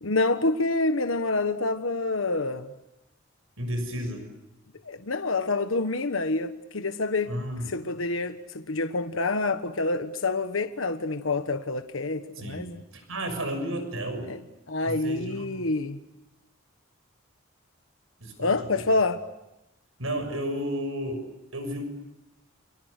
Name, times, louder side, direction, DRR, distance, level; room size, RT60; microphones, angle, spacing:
voice 1, 0.0-2.7 4.8-7.3 7.7-12.8 14.3-14.4 14.7-16.0 18.4-19.2, left 3 dB, 80° left, 1.3 m, -27 dB
voice 2, 3.6-4.3 7.3-7.7 12.4-12.7 12.9-14.3 14.8-15.6 18.2-18.5 20.0-21.2 21.5-21.8, equal, 90° right, 6.8 m, -32 dB
29.5 x 28.0 x 6.7 m
head